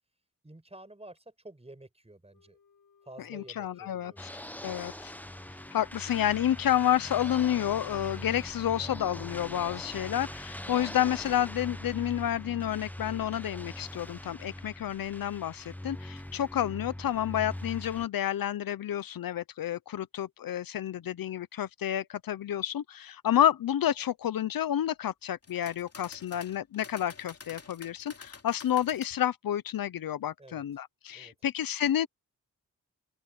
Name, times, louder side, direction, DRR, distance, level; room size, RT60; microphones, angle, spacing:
voice 1, 0.4-2.6 3.0-4.2 4.5-4.9 30.4-30.6 31.1-31.3, right 2 dB, 20° right, 6.3 m, -50 dB
Wind instrument woodwind instrument, 2.3-6.8, left 6 dB, 65° left, 7.9 m, -64 dB
voice 2, 3.2-4.3 4.6-5.1 5.7-32.1, left 11 dB, 80° left, 0.7 m, -30 dB
sound 1, 4.2-18.1, left 1 dB, 5° left, 0.9 m, -42 dB
sound 2, 25.2-29.1, left 4 dB, 45° left, 2.9 m, -50 dB
open air
cardioid pair, 80°, 34 cm